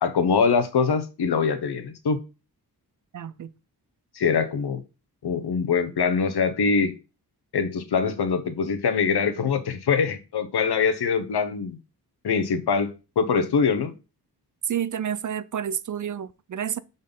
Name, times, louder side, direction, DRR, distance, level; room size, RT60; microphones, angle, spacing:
voice 1, 0.0-2.2 4.1-4.8 5.2-6.9 7.5-11.8 12.2-13.9, left 5 dB, 75° left, 1.1 m, -23 dB
voice 2, 3.1-3.5 14.6-16.8, right 9 dB, 50° right, 0.5 m, -29 dB
5.3 x 4.1 x 5.3 m
wide cardioid pair, 90°, 39 cm